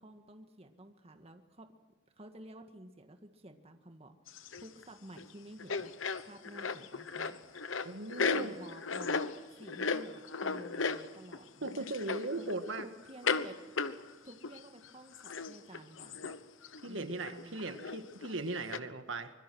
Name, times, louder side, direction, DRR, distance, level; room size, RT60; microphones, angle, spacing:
voice 1, 0.0-1.7 2.2-5.9 6.2-7.4 8.1-9.2 9.6-11.8 12.4-12.5 12.8-13.6 14.2-16.3 16.8-17.8, right 1 dB, 30° right, 6 dB, 1.8 m, -52 dB
sound 1, 4.3-4.8 5.2-5.3 5.6-11.4 11.6-12.8 13.2-13.5 13.8-14.6 14.8-14.9 15.1-16.4 16.6-16.9 17.2-18.3 18.7-18.8, left 4 dB, 90° left, 1.1 m, -35 dB
voice 2, 7.8-8.5 11.6-12.9 16.8-19.3, right 2 dB, 80° right, 8 dB, 1.8 m, -38 dB
25.0 x 22.0 x 6.2 m, 1.2 s
head